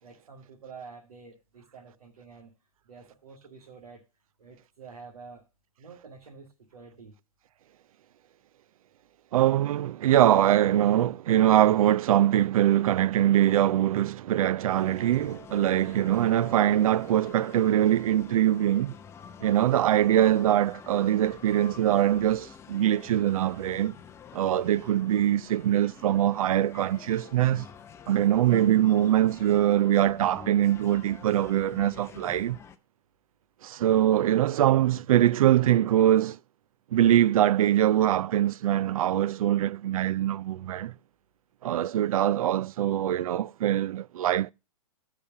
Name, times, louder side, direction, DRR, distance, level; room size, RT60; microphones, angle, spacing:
voice 1, 0.0-2.5 2.9-4.0 4.4-5.4 5.8-7.1, right 5 dB, 90° right, 2.0 m, -48 dB
voice 2, 9.3-18.9 19.4-23.9 24.3-27.7 28.1-32.6 33.6-36.4 36.9-40.9 41.6-44.5, right 12 dB, 70° right, 0.4 m, -23 dB
sound 1, 14.7-32.8, left 7 dB, 15° left, 0.6 m, -47 dB
8.6 x 5.0 x 6.9 m
hypercardioid pair, 135°, 19 cm